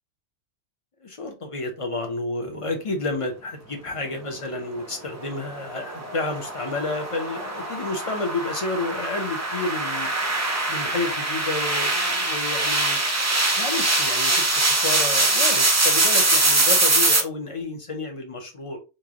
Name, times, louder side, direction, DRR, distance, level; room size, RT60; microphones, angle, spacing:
voice 1, 1.0-10.1 10.7-13.0 13.6-18.8, left 3 dB, 30° left, 3 dB, 0.7 m, -30 dB
sound 1, 5.1-17.2, right 2 dB, 25° right, 0.4 m, -23 dB
3.2 x 2.7 x 3.6 m, 0.30 s
omnidirectional pair, 1.2 m